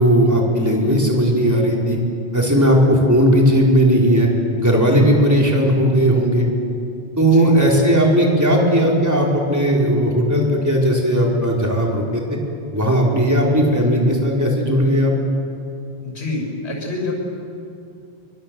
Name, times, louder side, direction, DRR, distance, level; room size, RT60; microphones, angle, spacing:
voice 1, 0.0-2.0 2.3-4.3 4.6-6.5 7.2-12.2 12.7-15.1, equal, 15° right, -2 dB, 4.6 m, -16 dB
voice 2, 7.1-7.5 16.0-17.1, left 2 dB, 90° left, 0 dB, 6.5 m, -27 dB
25.0 x 24.0 x 7.9 m, 2.6 s
omnidirectional pair, 1.1 m